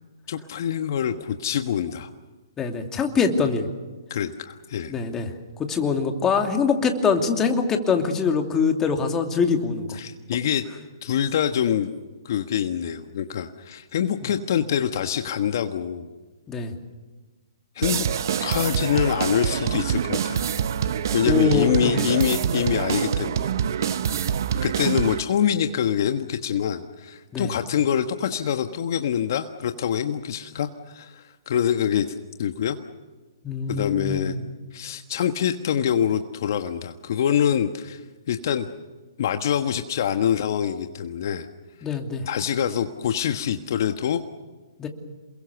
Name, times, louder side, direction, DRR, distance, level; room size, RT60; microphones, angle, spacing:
voice 1, 0.3-2.1 4.1-5.0 9.9-10.6 11.0-11.9 12.2-16.1 17.7-18.1 18.4-20.4 21.1-23.5 23.8-23.9 24.6-32.8 33.7-34.3 34.7-38.0 38.3-38.7 39.2-41.5 42.3-44.2, left 9 dB, 55° left, 7 dB, 1.4 m, -25 dB
voice 2, 2.6-3.7 4.9-5.3 5.6-9.9 14.2-14.3 16.5-16.7 21.3-22.0 27.3-27.5 33.4-34.4 41.8-42.2 44.8-44.9, left 5 dB, 15° left, 4 dB, 2.7 m, -23 dB
sound 1, 17.8-25.2, right 8 dB, 60° right, 1.0 m, -25 dB
28.5 x 22.0 x 7.0 m, 1.3 s
hypercardioid pair, 130°, 2 cm